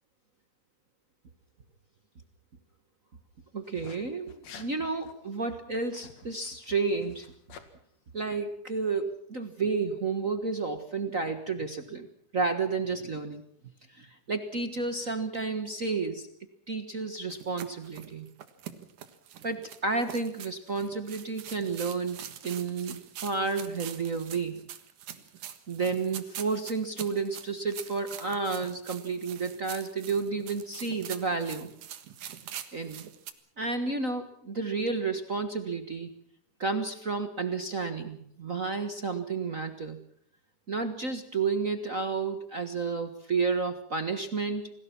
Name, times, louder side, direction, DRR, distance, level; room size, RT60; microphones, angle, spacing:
voice 1, 3.5-7.3 8.1-12.1 12.3-13.4 13.9-16.3 16.7-18.3 19.4-24.6 25.7-31.7 32.7-33.0 33.6-36.1 36.6-40.0 40.7-44.7, right 4 dB, 55° right, 8 dB, 0.9 m, -31 dB
sound 1, 3.6-4.0 4.3-4.7 5.0-5.1 5.8-7.7, left 7 dB, 55° left, 3.1 m, -50 dB
sound 2, 17.3-33.3, right 10 dB, 70° right, 3.0 m, -44 dB
28.5 x 20.0 x 6.0 m, 0.67 s
omnidirectional pair, 3.8 m